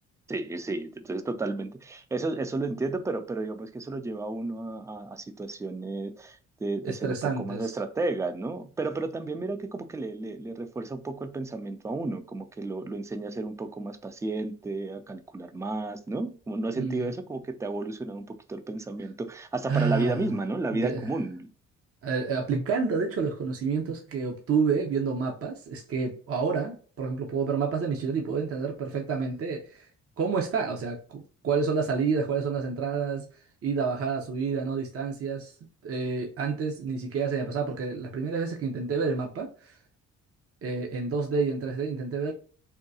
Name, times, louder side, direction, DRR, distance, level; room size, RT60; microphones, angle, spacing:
voice 1, 0.3-21.5, right 2 dB, 10° right, 0.4 m, -32 dB
voice 2, 6.8-7.7 16.8-17.1 19.7-20.3 20.7-21.1 22.0-29.9 30.2-33.3 33.6-35.5 35.8-39.8 40.6-42.3, right 5 dB, 50° right, 0.7 m, -29 dB
3.6 x 2.3 x 2.6 m
cardioid pair, 90°, 30 cm